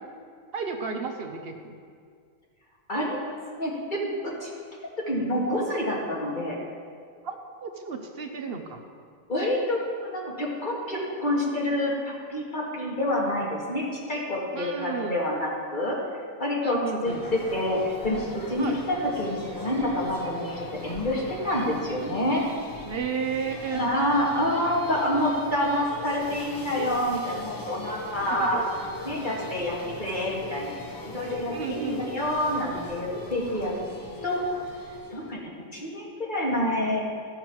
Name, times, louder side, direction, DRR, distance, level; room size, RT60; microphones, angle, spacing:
voice 1, 0.5-1.7 7.2-8.8 14.5-15.2 16.6-17.2 18.6-18.8 22.8-23.9 28.3-28.7 31.5-32.0, right 5 dB, 55° right, 4 dB, 0.9 m, -33 dB
voice 2, 2.9-4.5 5.1-6.6 9.3-16.0 16.4-22.5 23.7-28.6 29.0-30.7 31.0-33.7 34.2-34.4 35.1-37.0, left 1 dB, 35° left, -4 dB, 2.0 m, -28 dB
sound 1, 17.0-35.4, left 2 dB, 20° left, 0.6 m, -39 dB
15.0 x 5.9 x 4.7 m, 2.1 s
omnidirectional pair, 1.4 m